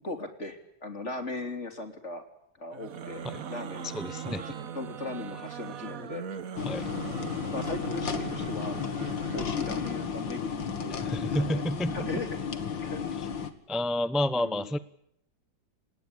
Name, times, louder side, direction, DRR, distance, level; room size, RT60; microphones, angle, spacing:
voice 1, 0.0-2.2 2.6-3.2 3.5-3.9 4.2-4.4 4.7-6.2 7.5-8.8 9.3-11.6 11.9-12.3 12.8-13.0 14.4-14.7, left 2 dB, 40° left, 7 dB, 3.7 m, -38 dB
sound 1, 2.7-10.0, right 8 dB, 50° right, 1.5 m, -40 dB
voice 2, 3.8-4.4 6.6-6.9 10.9-12.2 13.7-14.8, left 1 dB, ahead, 14 dB, 0.4 m, -30 dB
sound 2, 6.6-13.5, left 6 dB, 90° left, 2.6 m, -33 dB
27.5 x 20.0 x 8.4 m, 0.74 s
omnidirectional pair, 2.0 m